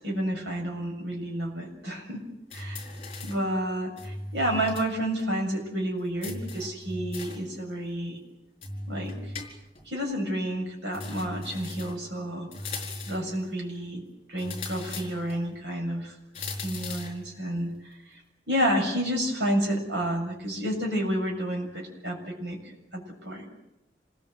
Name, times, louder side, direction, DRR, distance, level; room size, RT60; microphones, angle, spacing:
voice 1, 0.0-2.2 2.5-2.9 3.2-8.2 8.9-9.3 9.9-12.5 13.1-14.0 14.3-18.2 18.5-22.6 22.9-23.4, equal, 75° right, 2 dB, 7.1 m, -30 dB
sound 1, 2.5-3.5 4.0-4.9 5.2-5.3 6.2-7.5 8.6-9.9 10.9-12.1 12.5-13.3 14.4-15.4 16.3-17.2, left 2 dB, 35° left, 4.5 m, -38 dB
27.0 x 20.5 x 7.9 m, 0.90 s
head